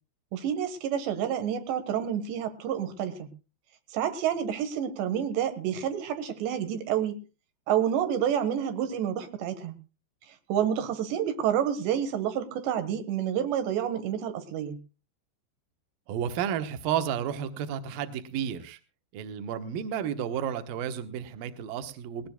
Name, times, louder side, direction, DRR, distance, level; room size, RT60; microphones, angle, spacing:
voice 1, 0.3-3.3 3.9-7.2 7.7-9.8 10.5-14.8, right 9 dB, 90° right, 8 dB, 3.7 m, -29 dB
voice 2, 16.1-18.8 19.1-22.3, right 9 dB, 65° right, 9 dB, 2.5 m, -32 dB
20.5 x 17.5 x 2.3 m, 0.32 s
omnidirectional pair, 4.8 m